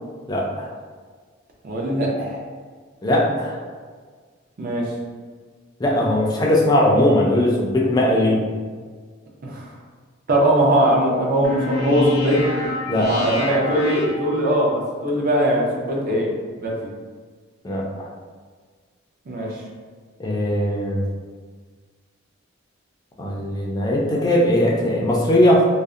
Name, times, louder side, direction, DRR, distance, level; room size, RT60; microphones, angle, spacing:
voice 1, 0.3-0.7 3.0-3.6 5.8-8.4 12.9-13.1 17.6-18.1 20.2-21.0 23.2-25.7, left 1 dB, 20° left, -3 dB, 0.3 m, -19 dB
voice 2, 1.6-2.4 4.6-4.8 9.4-9.7 10.3-12.4 13.0-16.3 16.6-16.7 19.3-19.5, right 1 dB, 45° right, -3 dB, 0.5 m, -20 dB
sound 1, 11.4-14.7, left 1 dB, 90° left, 0.4 m, -27 dB
2.6 x 2.0 x 2.4 m, 1.5 s
head